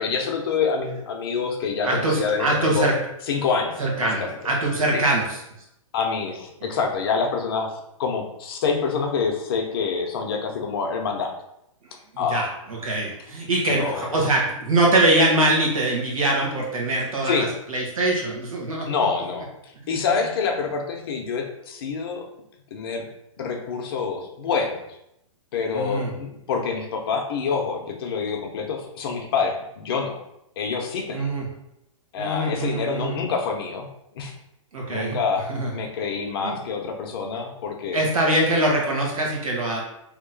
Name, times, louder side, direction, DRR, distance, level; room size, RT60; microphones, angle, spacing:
voice 1, 0.0-2.9 3.3-4.4 4.9-5.0 5.9-11.3 12.2-12.5 13.7-14.3 17.3-17.5 18.9-19.5 19.9-22.2 22.7-23.1 23.4-24.8 25.5-30.2 30.6-31.3 32.1-33.9 34.1-34.3 34.9-35.5 35.7-38.0, left 5 dB, 45° left, 2 dB, 0.7 m, -26 dB
voice 2, 1.8-3.0 3.8-5.4 12.1-18.9 25.7-26.1 31.1-31.5 32.2-33.2 34.7-35.2 35.5-35.7 36.4-36.6 37.9-39.8, right 2 dB, 85° right, -1 dB, 1.4 m, -23 dB
3.0 x 2.9 x 3.9 m, 0.81 s
hypercardioid pair, 160°, 17 cm